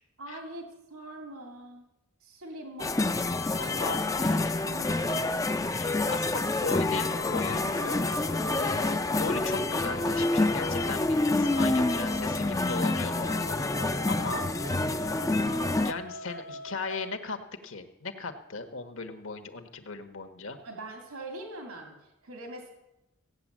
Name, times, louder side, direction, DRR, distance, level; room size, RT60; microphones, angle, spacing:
voice 1, 0.2-1.8 2.2-3.2 4.2-4.3 4.5-5.2 20.6-22.7, right 1 dB, 85° right, 2 dB, 2.6 m, -42 dB
sound 1, 2.8-15.9, left 2 dB, 15° left, 0.4 m, -27 dB
voice 2, 3.6-4.5 5.6-8.0 8.6-14.4 15.7-20.6, left 4 dB, 65° left, 7 dB, 1.3 m, -37 dB
sound 2, 6.9-17.1, left 1 dB, 45° left, 0.9 m, -43 dB
16.0 x 9.1 x 7.4 m, 0.95 s
head